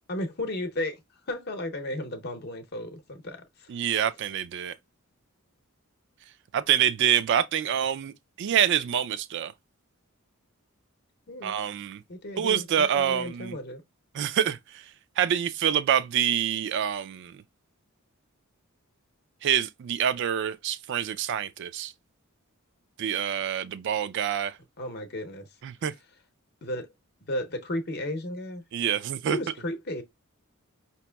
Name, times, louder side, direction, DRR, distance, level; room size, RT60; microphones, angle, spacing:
voice 1, 0.1-1.0 1.3-3.7 11.3-11.6 12.1-13.8 24.8-25.5 26.6-26.9 27.3-28.6 29.3-30.0, left 1 dB, 50° left, 0.7 m, -34 dB
voice 2, 3.7-4.8 6.5-9.5 11.4-12.0 12.4-13.5 14.1-14.8 15.2-17.4 19.4-21.9 23.0-24.6 25.6-25.9 28.7-29.4, right 9 dB, 55° right, 0.3 m, -26 dB
5.1 x 2.9 x 2.2 m
head